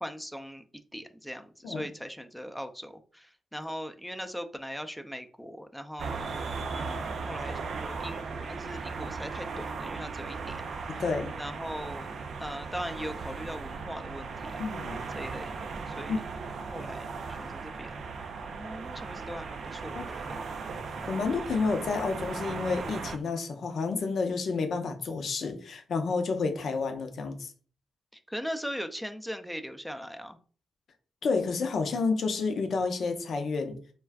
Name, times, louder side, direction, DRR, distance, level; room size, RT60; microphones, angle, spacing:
voice 1, 0.0-0.6 0.9-6.2 6.8-11.0 11.4-12.1 12.4-14.6 15.2-16.2 16.7-17.9 18.4-20.4 28.1-30.4, equal, ahead, 7 dB, 0.4 m, -40 dB
sound 1, 6.0-23.2, right 4 dB, 70° right, 0.3 m, -37 dB
voice 2, 10.9-11.4 14.6-15.0 16.1-16.2 19.9-20.0 21.1-27.5 31.2-33.8, left 4 dB, 70° left, 6 dB, 0.5 m, -30 dB
2.3 x 2.2 x 3.4 m, 0.41 s
supercardioid pair, 45°, 0 cm